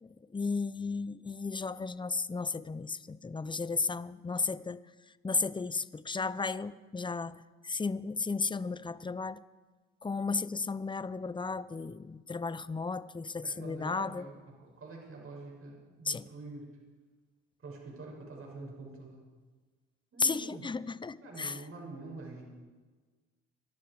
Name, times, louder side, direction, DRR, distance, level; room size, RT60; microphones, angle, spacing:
voice 1, 0.0-4.8 5.2-9.4 10.0-14.2 16.1-16.3 20.2-21.6, left 4 dB, 15° left, 16 dB, 0.6 m, -34 dB
voice 2, 13.4-16.7 17.6-19.2 20.1-20.6 21.2-22.4, right 2 dB, 45° right, -1 dB, 6.6 m, -46 dB
24.0 x 11.5 x 4.9 m, 1.4 s
supercardioid pair, 75°, 33 cm